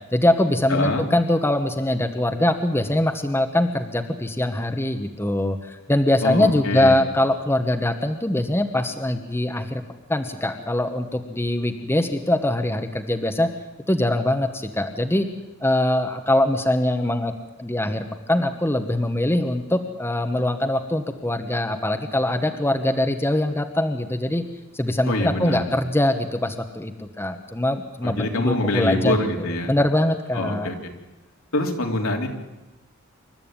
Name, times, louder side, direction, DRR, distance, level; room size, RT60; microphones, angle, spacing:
voice 1, 0.1-9.8 10.1-13.5 13.9-15.3 15.6-17.3 17.6-24.4 24.7-29.2 29.7-30.7, left 1 dB, 10° left, 6 dB, 1.2 m, -22 dB
voice 2, 0.7-1.0 6.2-7.0 25.0-25.6 28.0-29.8 30.3-30.9 31.5-32.3, left 1 dB, 75° left, 1 dB, 3.4 m, -25 dB
27.0 x 13.0 x 8.9 m, 1.0 s
head